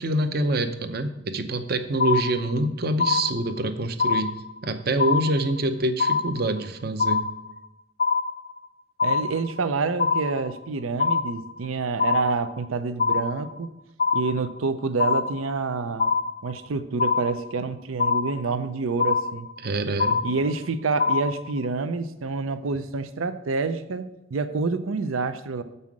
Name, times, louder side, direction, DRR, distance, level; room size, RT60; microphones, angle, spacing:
voice 1, 0.0-7.4 19.6-20.2, right 1 dB, 50° right, 9 dB, 0.6 m, -26 dB
sound 1, 2.0-2.7 3.0-3.7 4.0-4.7 5.0-5.7 6.0-6.7 7.0-7.7 8.0-8.7 9.0-9.7 10.0-10.7 11.0-11.7 12.0-12.7 13.0-13.7 14.0-14.7 15.0-15.7 16.0-16.7 17.0-17.7 18.0-18.7 19.0-19.7 20.0-20.7 21.0-21.7, left 5 dB, 45° left, 0.5 m, -25 dB
voice 2, 9.0-13.7 14.1-16.1 16.4-19.5 20.2-25.6, right 4 dB, 85° right, 11 dB, 0.6 m, -27 dB
7.4 x 5.5 x 6.0 m, 0.92 s
head